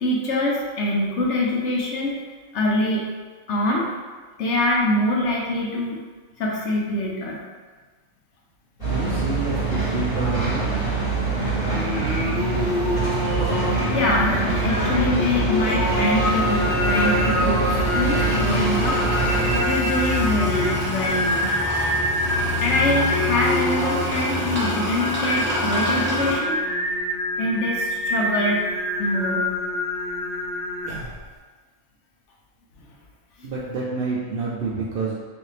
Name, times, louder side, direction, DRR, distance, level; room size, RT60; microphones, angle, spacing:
voice 1, 0.0-2.1 2.5-3.1 3.5-3.9 4.4-6.0 6.4-7.4 13.9-14.4 14.6-17.7 17.9-19.0 19.3-22.0 22.6-26.6 27.4-28.6 29.0-29.5 33.4-33.5, left 1 dB, 65° left, -2 dB, 1.0 m, -24 dB
sound 1, 8.8-19.6, right 3 dB, 25° left, 1.2 m, -24 dB
voice 2, 8.9-10.7 33.4-35.1, right 3 dB, 60° right, -5 dB, 0.6 m, -28 dB
Singing, 11.6-31.2, left 1 dB, 45° left, 1.0 m, -26 dB
sound 2, 15.8-26.3, left 1 dB, 10° right, 0.7 m, -28 dB
4.0 x 2.6 x 3.2 m, 1.4 s
omnidirectional pair, 1.4 m